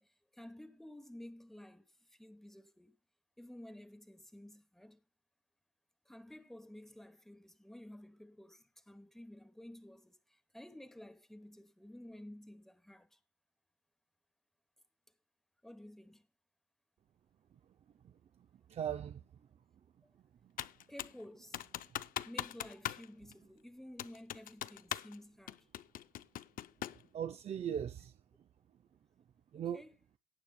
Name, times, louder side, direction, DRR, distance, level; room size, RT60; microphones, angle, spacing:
voice 1, 0.0-3.0 3.4-5.0 6.1-13.2 15.6-16.3 20.0-20.1 20.9-21.6 22.2-25.7 29.5-29.9, left 1 dB, ahead, 1.0 m, -53 dB
voice 2, 18.7-19.2 20.4-20.5 27.1-28.1 29.5-29.8, right 9 dB, 40° right, 0.5 m, -38 dB
Computer keyboard, 20.6-21.2 21.5-23.1 23.3-23.4 24.0-25.2 25.5-27.0, left 12 dB, 55° left, 0.5 m, -41 dB
18.0 x 9.0 x 2.2 m
cardioid pair, 110°, 17 cm